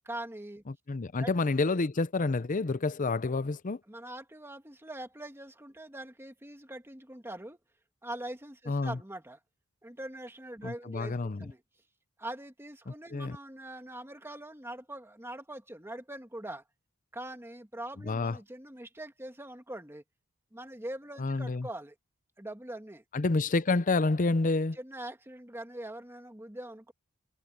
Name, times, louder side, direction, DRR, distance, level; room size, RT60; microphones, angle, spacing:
voice 1, 0.0-0.6 1.2-1.3 3.9-7.6 8.0-9.4 9.8-11.6 12.2-16.6 17.1-20.0 20.5-21.9 22.4-23.0 24.7-26.9, right 1 dB, 10° right, 1.8 m, -43 dB
voice 2, 0.7-3.8 8.7-9.0 10.6-11.5 12.9-13.4 18.0-18.4 21.2-21.7 23.1-24.8, left 3 dB, 40° left, 0.6 m, -29 dB
head